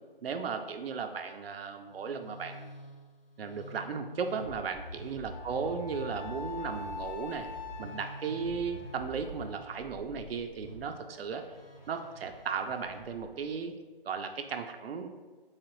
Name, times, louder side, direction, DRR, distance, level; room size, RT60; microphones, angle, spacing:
voice 1, 0.2-2.8 3.4-7.5 7.8-11.4 11.9-13.7 14.0-15.1, right 5 dB, 85° right, 6 dB, 0.5 m, -36 dB
Musical instrument, 1.8-13.6, equal, 90° left, 1.3 m, -47 dB
Wind instrument woodwind instrument, 5.3-9.7, left 5 dB, 55° left, 0.4 m, -44 dB
4.0 x 2.9 x 3.0 m, 1.4 s
hypercardioid pair, 160°, 29 cm